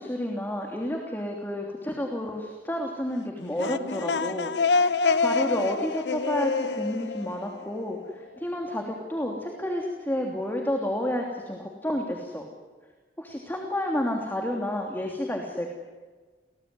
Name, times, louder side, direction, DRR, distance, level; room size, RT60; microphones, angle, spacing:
voice 1, 0.0-4.5 5.2-12.5 13.2-15.7, left 1 dB, 10° left, 1 dB, 3.1 m, -30 dB
sound 1, 3.4-8.1, left 4 dB, 75° left, 1.0 m, -27 dB
29.0 x 20.0 x 9.8 m, 1.4 s
head